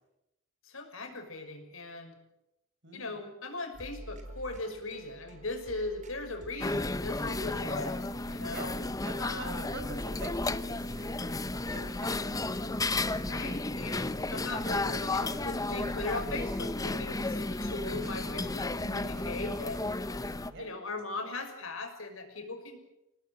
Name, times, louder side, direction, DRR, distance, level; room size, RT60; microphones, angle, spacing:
voice 1, 0.6-2.2 2.9-8.0 8.3-8.8 9.2-9.6 13.3-19.8 20.6-22.8, left 3 dB, 85° left, 4 dB, 5.9 m, -39 dB
voice 2, 2.8-3.2 8.5-11.2 11.7-12.8 20.5-20.8, right 2 dB, 60° right, 7 dB, 5.1 m, -45 dB
sound 1, 3.7-20.6, right 1 dB, 40° right, 4.3 m, -48 dB
sound 2, 6.6-20.5, left 2 dB, 20° left, 0.8 m, -33 dB
29.0 x 18.5 x 8.1 m, 0.89 s
head